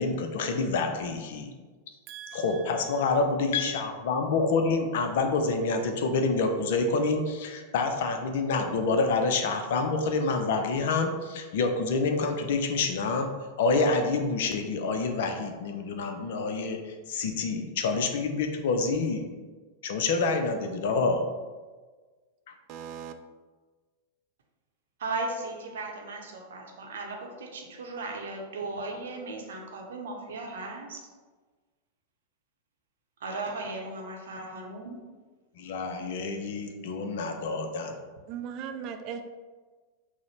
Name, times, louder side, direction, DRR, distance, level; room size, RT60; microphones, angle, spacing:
voice 1, 0.0-1.5 2.3-13.3 13.6-19.2 19.8-21.2 35.6-38.0, left 3 dB, 55° left, 6 dB, 0.4 m, -27 dB
voice 2, 2.1-2.8 22.7-23.1 38.3-39.2, right 8 dB, 40° right, 6 dB, 0.3 m, -39 dB
voice 3, 25.0-31.0 33.2-35.0, right 3 dB, 60° right, 1 dB, 0.7 m, -36 dB
6.1 x 2.1 x 3.0 m, 1.4 s
figure-of-eight pair, 90°, 0 cm